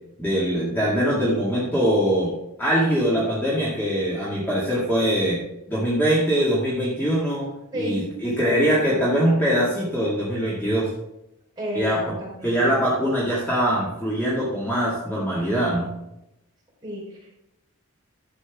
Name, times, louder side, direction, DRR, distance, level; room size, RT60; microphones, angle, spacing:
voice 1, 0.2-2.3 2.6-5.4 5.7-7.5 7.7-10.9 11.8-12.0 12.4-15.9, equal, 10° left, -7 dB, 2.0 m, -22 dB
voice 2, 7.7-8.7 11.6-12.7 16.8-17.4, equal, 20° right, -5 dB, 4.1 m, -33 dB
11.5 x 8.1 x 3.6 m, 0.87 s
head